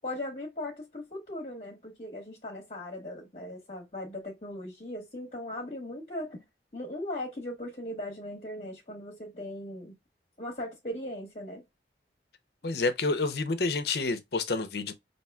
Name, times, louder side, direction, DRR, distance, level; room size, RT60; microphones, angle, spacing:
voice 1, 0.0-6.4 6.7-10.0 10.4-11.6, left 1 dB, 40° left, 1.0 m, -38 dB
voice 2, 12.6-14.9, left 3 dB, 65° left, 0.7 m, -29 dB
5.6 x 2.8 x 2.3 m
head